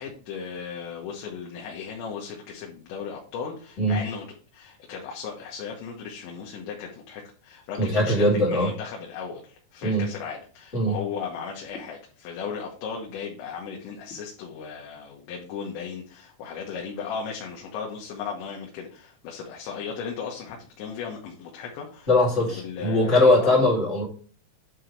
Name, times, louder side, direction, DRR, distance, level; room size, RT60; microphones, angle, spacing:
voice 1, 0.0-4.3 4.5-22.1 22.4-23.6, left 6 dB, 85° left, -1 dB, 3.5 m, -36 dB
voice 2, 7.8-8.7 9.8-10.1 10.7-11.0 22.1-24.1, left 1 dB, 25° left, -4 dB, 1.8 m, -21 dB
10.0 x 3.8 x 4.6 m, 0.42 s
omnidirectional pair, 5.0 m